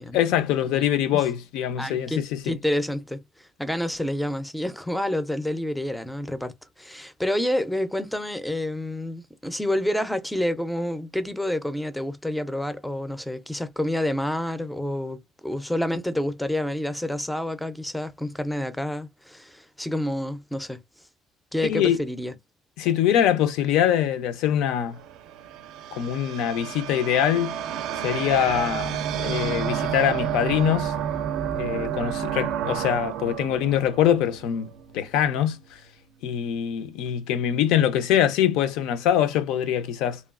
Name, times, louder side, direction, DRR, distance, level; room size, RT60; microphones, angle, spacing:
voice 1, 0.0-2.6 21.6-22.0 22.8-25.0 25.9-27.6 28.0-30.9 31.5-35.6 36.2-40.2, left 10 dB, 85° left, 0.4 m, -23 dB
voice 2, 0.7-1.2 1.8-6.5 6.8-20.8 21.5-22.3, left 1 dB, ahead, 0.3 m, -28 dB
sound 1, 24.7-35.1, right 9 dB, 75° right, 0.4 m, -30 dB
3.0 x 2.3 x 2.3 m
cardioid pair, 150°, 0 cm